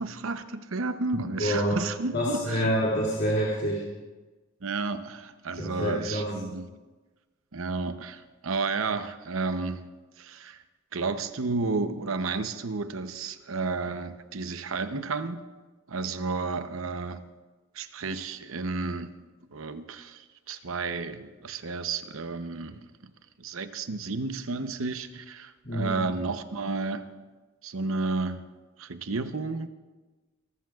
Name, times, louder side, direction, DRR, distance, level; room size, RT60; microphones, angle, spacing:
voice 1, 0.0-2.7 4.6-6.7 7.5-9.9 10.2-10.6 10.9-15.4 15.9-17.2 17.7-19.1 19.5-22.9 23.4-27.1 27.6-28.4 28.8-29.7, right 3 dB, 90° right, 10 dB, 0.8 m, -32 dB
voice 2, 1.1-1.8 2.1-3.8 5.6-6.3 25.6-26.0, equal, 55° left, -6 dB, 2.5 m, -27 dB
25.0 x 14.0 x 2.4 m, 1.3 s
head